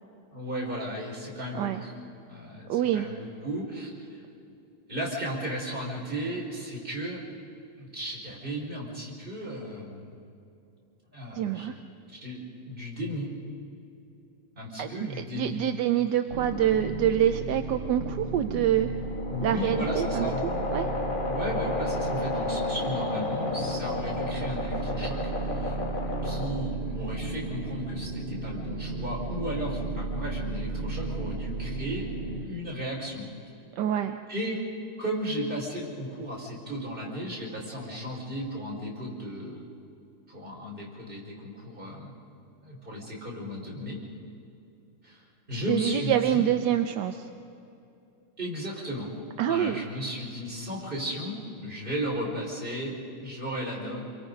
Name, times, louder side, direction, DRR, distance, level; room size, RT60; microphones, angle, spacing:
voice 1, 0.3-1.9 2.3-4.2 4.9-7.2 7.8-10.1 11.1-11.8 12.2-13.3 14.6-15.6 19.3-20.5 21.1-25.8 26.2-32.1 32.4-33.3 34.3-34.6 35.0-39.7 40.3-42.1 42.6-44.0 45.0-46.5 48.4-49.1 49.5-52.9 53.2-54.1, equal, 20° right, -3 dB, 4.7 m, -35 dB
voice 2, 2.7-3.1 11.3-11.8 14.8-18.9 19.4-20.3 20.7-20.9 33.8-34.2 45.5-47.3 49.4-49.9, right 11 dB, 70° right, 7 dB, 1.1 m, -26 dB
sound 1, 16.3-32.5, right 2 dB, 90° right, 2.6 m, -34 dB
sound 2, 18.6-26.8, left 3 dB, 25° left, 1.3 m, -33 dB
28.5 x 22.5 x 5.3 m, 2.7 s
omnidirectional pair, 2.4 m